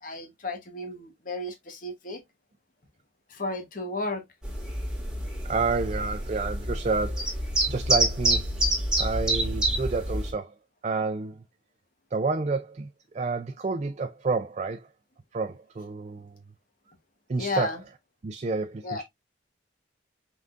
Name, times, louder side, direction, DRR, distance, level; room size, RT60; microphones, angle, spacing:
voice 1, 0.0-2.2 3.3-4.2 17.4-17.8 18.8-19.0, left 2 dB, 45° left, 1.1 m, -33 dB
sound 1, 4.4-10.3, right 1 dB, 5° right, 1.9 m, -27 dB
voice 2, 5.4-8.5 9.0-10.5 10.8-11.4 12.1-12.9 13.1-14.9 15.3-16.4 17.3-17.8 18.2-19.0, right 4 dB, 35° right, 0.4 m, -29 dB
5.8 x 3.7 x 2.4 m
head